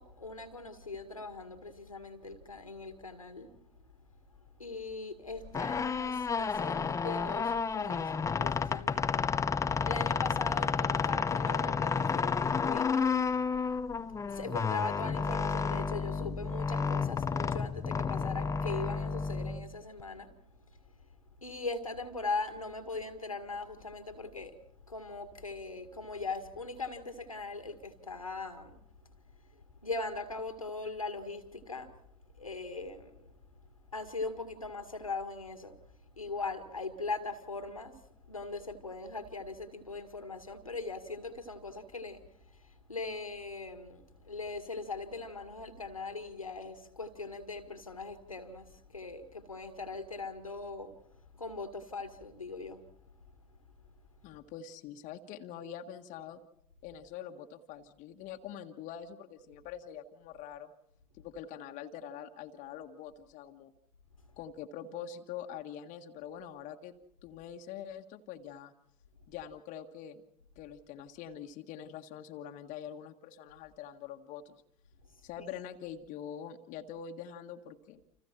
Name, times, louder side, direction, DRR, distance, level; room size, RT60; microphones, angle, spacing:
voice 1, 0.0-3.5 4.6-9.3 9.5-13.1 14.3-20.3 20.6-21.1 21.4-24.6 24.9-28.8 29.5-31.9 32.4-33.3 33.9-35.7 36.1-38.0 38.3-42.2 42.5-50.9 51.3-52.8 75.4-75.5, left 3 dB, 85° left, 2.0 m, -40 dB
sound 1, 5.4-20.0, left 5 dB, 20° left, 0.8 m, -31 dB
voice 2, 54.2-56.4 56.8-60.7 61.2-63.7 64.4-66.9 67.2-68.7 69.3-70.2 70.5-74.5 75.2-78.0, left 9 dB, 45° left, 1.6 m, -44 dB
29.0 x 27.5 x 4.4 m
figure-of-eight pair, 70°, 17 cm